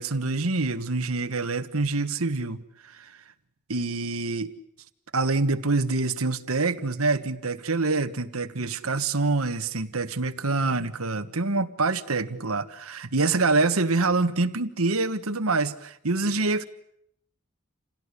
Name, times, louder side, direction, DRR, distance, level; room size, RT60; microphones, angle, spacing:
voice 1, 0.0-3.2 3.7-4.5 5.1-16.6, right 3 dB, 90° right, 9 dB, 1.5 m, -26 dB
28.5 x 17.5 x 9.9 m, 0.75 s
head